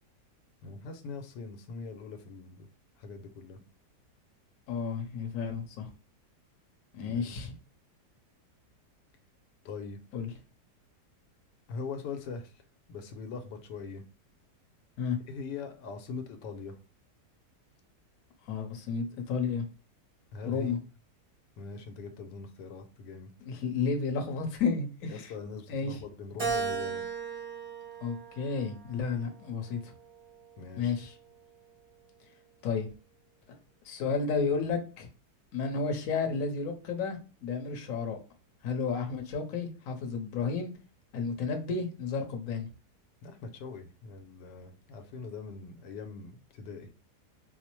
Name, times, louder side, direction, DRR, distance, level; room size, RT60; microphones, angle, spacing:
voice 1, 0.6-2.7 3.0-3.6 7.1-7.5 9.6-10.0 11.7-12.5 12.9-14.0 15.2-16.8 20.3-20.7 21.6-23.3 25.1-27.0 30.6-30.9 43.2-46.9, left 4 dB, 90° left, 1.2 m, -42 dB
voice 2, 4.7-5.9 6.9-7.5 10.1-10.3 15.0-15.2 18.5-19.6 20.4-20.8 23.4-25.3 25.7-26.0 28.0-29.9 30.8-31.1 32.6-32.9 33.8-35.1 35.5-38.2 38.6-40.7 41.1-42.7, left 5 dB, 60° left, 1.0 m, -32 dB
Keyboard (musical), 26.4-28.9 29.5-30.7, right 5 dB, 45° right, 0.4 m, -36 dB
4.4 x 2.0 x 3.0 m
omnidirectional pair, 1.8 m